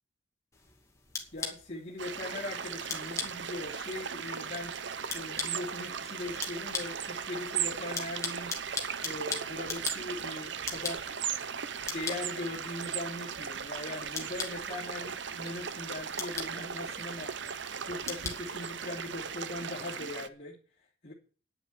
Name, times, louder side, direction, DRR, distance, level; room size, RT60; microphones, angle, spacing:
sound 1, 0.5-19.3, left 4 dB, 15° left, 2.4 m, -42 dB
voice 1, 1.3-8.5 9.0-11.1 11.9-17.6 17.8-20.6 21.0-21.1, left 2 dB, 40° left, -4 dB, 2.8 m, -40 dB
sound 2, 2.0-20.3, right 7 dB, 65° right, 0.8 m, -37 dB
10.0 x 7.7 x 9.3 m, 0.40 s
head